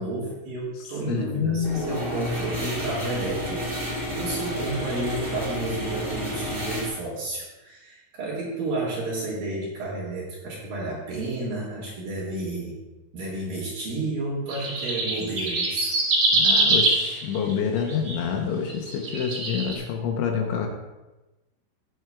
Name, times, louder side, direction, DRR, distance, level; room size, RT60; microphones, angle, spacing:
voice 1, 0.0-3.7 4.2-12.8 13.1-15.9 16.3-16.5, right 2 dB, 60° right, -6 dB, 2.8 m, -31 dB
voice 2, 0.8-2.1 16.3-20.7, left 7 dB, 75° left, 2 dB, 3.1 m, -28 dB
sound 1, 1.6-6.9, equal, 15° right, 1.7 m, -30 dB
sound 2, 14.5-18.2 18.7-19.7, right 2 dB, 40° right, 1.8 m, -23 dB
17.5 x 7.9 x 2.4 m, 1.1 s
omnidirectional pair, 6.0 m